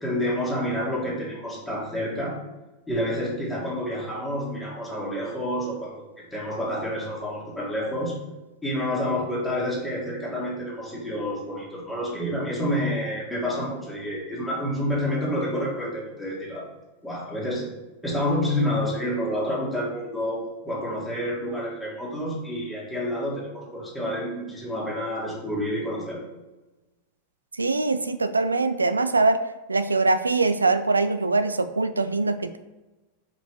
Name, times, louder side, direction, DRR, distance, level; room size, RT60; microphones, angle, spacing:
voice 1, 0.0-2.4 2.9-8.2 8.6-16.7 17.0-17.7 18.0-26.2, equal, 5° left, -7 dB, 1.9 m, -29 dB
voice 2, 27.5-29.4 29.7-32.6, right 3 dB, 80° right, 11 dB, 0.3 m, -23 dB
4.9 x 4.5 x 4.7 m, 1.1 s
figure-of-eight pair, 90°, 0 cm